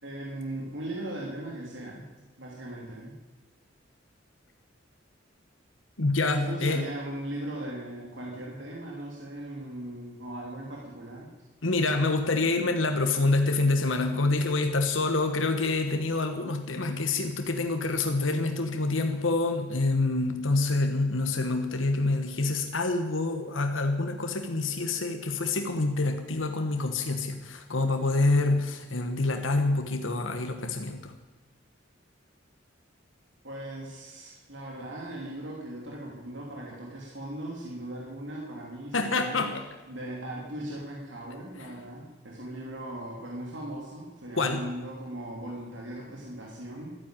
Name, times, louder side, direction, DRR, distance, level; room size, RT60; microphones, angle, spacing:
voice 1, 0.0-2.1 2.4-3.2 6.3-11.3 33.4-39.4 39.9-47.0, right 1 dB, 70° right, -2 dB, 2.9 m, -38 dB
voice 2, 6.0-6.8 11.6-31.1 38.9-39.6 44.4-44.7, left 3 dB, 80° left, 5 dB, 1.4 m, -27 dB
14.0 x 10.0 x 9.0 m, 1.2 s
head